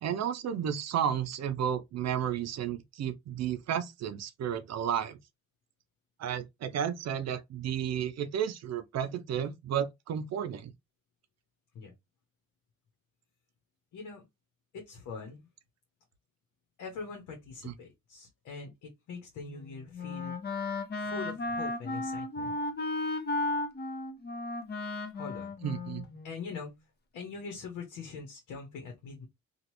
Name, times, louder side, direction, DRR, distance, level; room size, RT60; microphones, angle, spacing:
voice 1, 0.0-5.2 6.2-10.7 17.6-17.7 25.6-26.0, right 9 dB, 60° right, 0.5 m, -32 dB
voice 2, 13.9-14.3 14.7-15.4 16.8-20.3 20.9-22.5 25.1-25.5 26.2-26.7 27.1-29.3, left 5 dB, 80° left, 1.1 m, -43 dB
Wind instrument woodwind instrument, 19.5-26.6, left 2 dB, 35° left, 0.7 m, -35 dB
2.9 x 2.4 x 2.9 m
cardioid pair, 90°, 30 cm